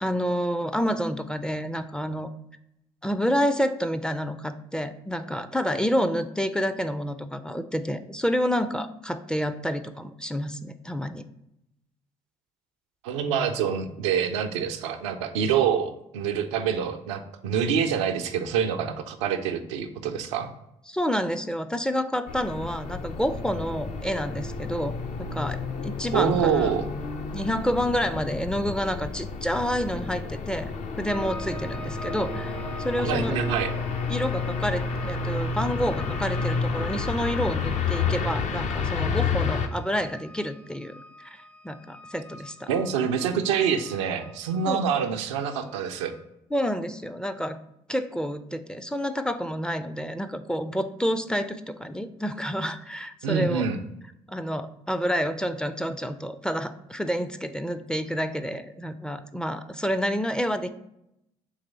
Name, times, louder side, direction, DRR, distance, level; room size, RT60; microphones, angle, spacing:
voice 1, 0.0-2.3 3.0-11.2 20.9-24.9 25.3-26.7 27.3-33.4 34.1-40.9 41.2-42.7 44.7-44.9 46.5-47.6 47.9-53.7 54.3-60.7, equal, 5° left, 10 dB, 0.4 m, -29 dB
voice 2, 13.0-20.5 26.1-26.9 33.0-33.7 42.7-46.1 53.2-53.8, right 7 dB, 85° right, 6 dB, 0.4 m, -26 dB
sound 1, 22.3-39.7, left 5 dB, 50° left, 0.6 m, -30 dB
sound 2, 31.1-46.2, left 1 dB, 90° left, 1.1 m, -44 dB
3.9 x 3.1 x 4.0 m, 0.82 s
hypercardioid pair, 55°, 15 cm